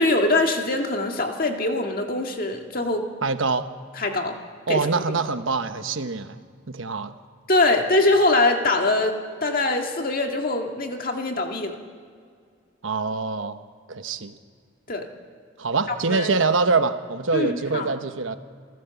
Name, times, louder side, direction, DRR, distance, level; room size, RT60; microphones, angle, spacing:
voice 1, 0.0-3.1 4.0-4.4 4.7-4.8 7.5-11.8 14.9-15.1 15.9-16.3 17.3-17.9, left 2 dB, 45° left, 3 dB, 2.0 m, -23 dB
voice 2, 3.2-3.7 4.7-6.4 6.7-7.1 12.8-13.6 13.9-14.3 15.6-18.4, right 4 dB, 85° right, 10 dB, 1.1 m, -24 dB
27.5 x 14.0 x 7.1 m, 2.1 s
head